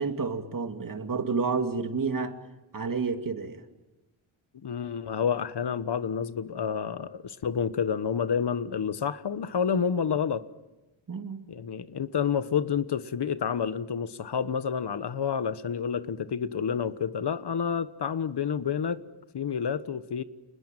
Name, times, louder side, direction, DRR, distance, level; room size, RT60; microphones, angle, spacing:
voice 1, 0.0-2.4 2.7-3.6 11.1-11.5, right 4 dB, 40° right, 2.3 m, -30 dB
voice 2, 4.6-10.5 11.5-19.0 19.3-20.2, left 7 dB, 55° left, 1.3 m, -29 dB
29.5 x 20.5 x 9.1 m
wide cardioid pair, 110°, 49 cm